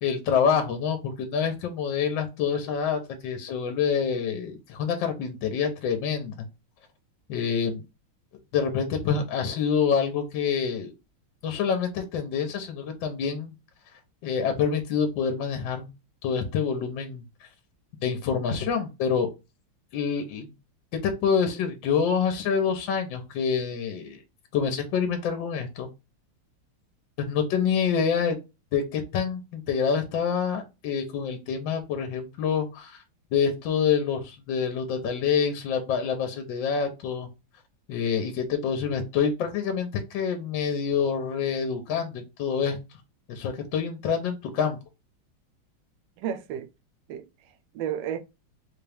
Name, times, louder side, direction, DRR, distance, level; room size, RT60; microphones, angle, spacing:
voice 1, 0.0-6.5 7.3-7.8 8.5-10.9 11.4-13.5 14.2-15.9 16.2-17.2 18.0-19.3 19.9-20.5 20.9-24.2 24.5-25.9 27.2-28.4 28.7-33.0 33.3-37.3 37.9-42.8 43.3-44.8, left 6 dB, 70° left, 1.3 m, -27 dB
voice 2, 46.2-46.7 47.1-48.2, right 9 dB, 75° right, 1.1 m, -33 dB
4.2 x 2.3 x 3.3 m
omnidirectional pair, 2.4 m